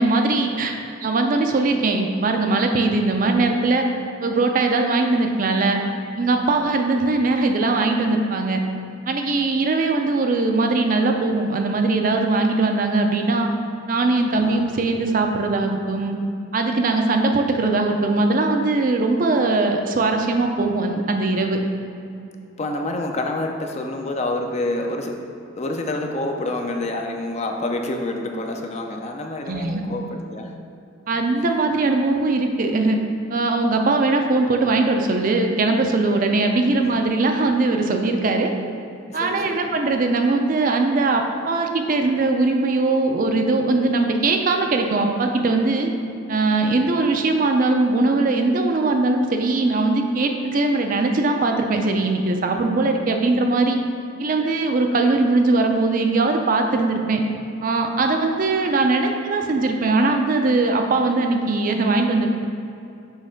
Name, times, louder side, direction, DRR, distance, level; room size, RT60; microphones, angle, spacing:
voice 1, 0.0-3.9 4.2-5.8 6.2-8.6 9.1-13.5 13.9-16.2 16.5-21.6 29.5-29.8 31.1-33.0 33.3-38.5 39.1-45.9 46.3-53.8 54.2-57.2 57.6-62.3, right 3 dB, 40° right, 4 dB, 0.4 m, -20 dB
voice 2, 22.6-25.2 25.6-30.6 39.2-39.7, left 2 dB, 30° left, 3 dB, 0.4 m, -27 dB
6.3 x 3.2 x 5.1 m, 2.6 s
head